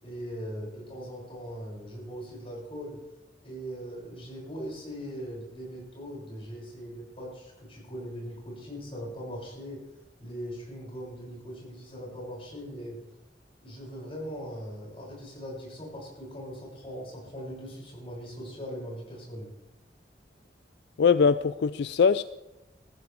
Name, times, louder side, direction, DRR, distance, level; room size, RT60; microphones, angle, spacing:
voice 1, 0.0-3.0 3.4-9.9 10.2-13.0 13.6-19.5, equal, 35° left, -3 dB, 6.8 m, -40 dB
voice 2, 21.0-22.2, left 6 dB, 70° left, 14 dB, 0.4 m, -22 dB
19.5 x 14.5 x 3.5 m, 1.0 s
head